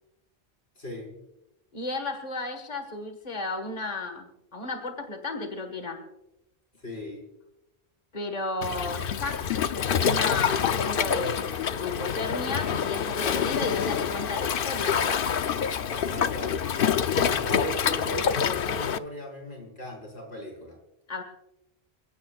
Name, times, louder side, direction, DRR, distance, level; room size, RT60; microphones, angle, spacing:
voice 1, 0.8-1.1 6.7-7.2 15.9-20.8, equal, 90° left, -2 dB, 5.7 m, -38 dB
voice 2, 1.7-6.0 8.1-9.4 9.7-15.3 21.1-21.2, left 3 dB, 40° left, 5 dB, 1.7 m, -34 dB
Waves surf, 8.6-19.0, left 7 dB, 60° left, 0.8 m, -26 dB
28.5 x 16.5 x 2.4 m, 0.90 s
omnidirectional pair, 1.1 m